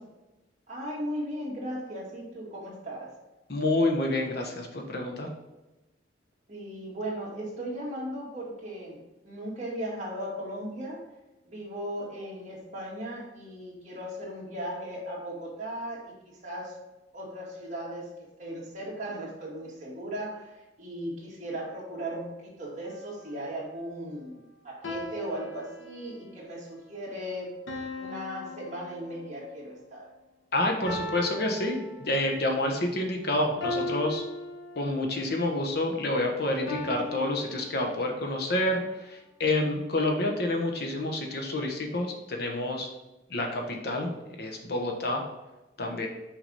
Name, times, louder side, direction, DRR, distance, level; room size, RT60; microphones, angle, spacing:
voice 1, 0.7-3.1 6.5-11.0 11.5-16.1 16.4-16.7 17.1-18.1 18.4-27.5 27.9-30.1, equal, 40° right, -5 dB, 2.2 m, -37 dB
voice 2, 3.5-5.3 30.5-34.2 34.7-42.9 43.3-44.1 44.4-45.2 45.8-46.1, left 1 dB, 55° left, 2 dB, 1.0 m, -28 dB
sound 1, 22.8-23.3 24.8-26.3 27.7-29.5 30.8-32.5 33.6-35.2 36.7-38.3, left 2 dB, 90° left, 1.3 m, -38 dB
6.1 x 5.0 x 4.1 m, 1.0 s
head